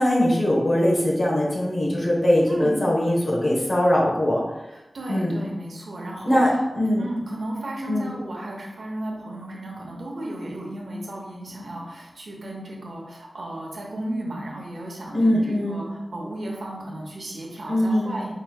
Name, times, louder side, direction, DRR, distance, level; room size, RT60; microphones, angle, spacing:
voice 1, 0.0-4.4 5.1-5.3 6.2-7.0 7.9-8.1 15.1-15.9 17.7-18.2, left 1 dB, 55° left, -3 dB, 1.2 m, -21 dB
voice 2, 2.5-2.8 4.7-6.4 7.0-18.3, right 1 dB, 80° right, -2 dB, 0.9 m, -34 dB
5.5 x 3.1 x 2.3 m, 0.99 s
wide cardioid pair, 70°, 0 cm